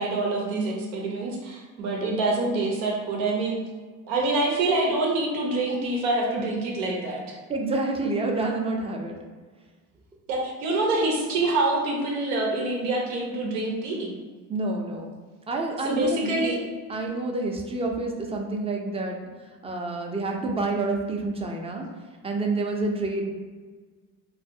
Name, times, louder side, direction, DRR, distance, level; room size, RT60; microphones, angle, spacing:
voice 1, 0.0-3.6 4.1-7.4 10.3-14.1 15.8-16.6, right 2 dB, 90° right, -1 dB, 0.7 m, -26 dB
voice 2, 7.5-9.1 14.5-15.1 15.5-16.6 16.9-19.2 19.6-21.8 22.2-23.2, right 2 dB, 15° right, 1 dB, 0.4 m, -28 dB
2.5 x 2.3 x 2.6 m, 1.4 s
hypercardioid pair, 65°, 43 cm